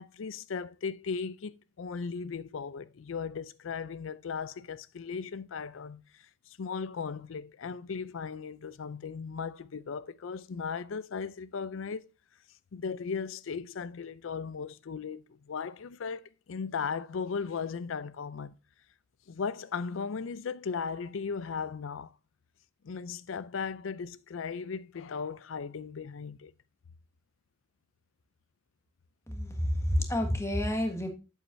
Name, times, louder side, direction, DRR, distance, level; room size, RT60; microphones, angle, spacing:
voice 1, 0.0-12.1 12.7-18.6 19.3-22.1 22.8-26.5, left 5 dB, 75° left, 0.5 m, -37 dB
voice 2, 29.3-31.1, equal, 15° left, 1.5 m, -29 dB
8.1 x 7.7 x 2.6 m
head